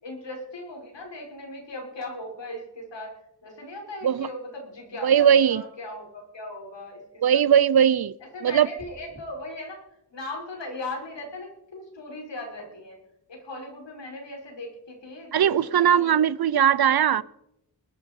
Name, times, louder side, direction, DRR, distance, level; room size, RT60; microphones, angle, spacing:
voice 1, 0.0-3.1 3.4-7.4 8.3-9.8 10.1-13.0 13.3-16.2, left 2 dB, 85° left, 5.9 m, -38 dB
voice 2, 5.0-5.6 7.2-8.1 8.4-8.7 15.3-17.2, right 9 dB, 60° right, 0.6 m, -19 dB
sound 1, 8.8-9.2, right 1 dB, 25° right, 4.0 m, -47 dB
20.5 x 12.0 x 5.4 m
wide cardioid pair, 160°, 42 cm